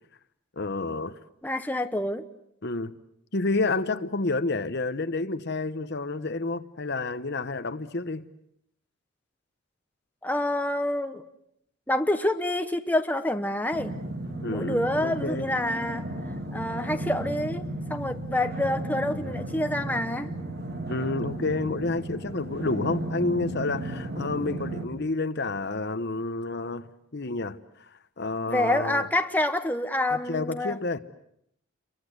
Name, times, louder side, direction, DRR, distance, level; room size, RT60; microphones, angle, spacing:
voice 1, 0.6-1.1 2.6-2.9 3.3-8.3 14.4-15.5 20.9-29.1 30.1-31.0, left 3 dB, 50° left, 1.0 m, -30 dB
voice 2, 1.4-2.3 10.2-11.2 11.9-14.0 14.4-16.1 16.5-17.6 17.9-20.3 28.5-30.8, left 1 dB, 10° left, 1.0 m, -27 dB
sound 1, 13.7-24.9, right 1 dB, 50° right, 3.2 m, -34 dB
29.5 x 23.0 x 7.9 m
head